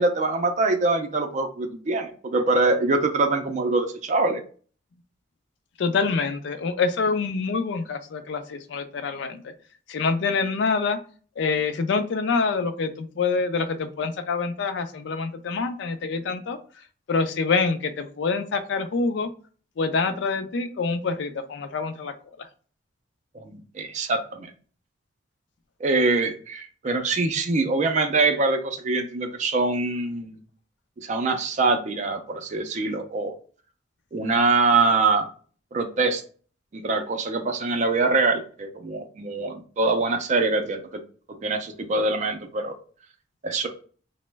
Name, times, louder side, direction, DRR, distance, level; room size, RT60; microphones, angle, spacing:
voice 1, 0.0-4.4 23.3-24.5 25.8-30.4 31.0-33.3 34.1-35.3 35.7-36.2 36.7-41.0 41.3-42.7 43.4-43.7, right 3 dB, 40° right, 6 dB, 0.4 m, -24 dB
voice 2, 5.8-9.5 9.9-11.0 11.4-16.6 17.1-19.3 19.8-22.5, left 4 dB, 65° left, 9 dB, 0.4 m, -26 dB
3.0 x 2.0 x 3.3 m, 0.42 s
head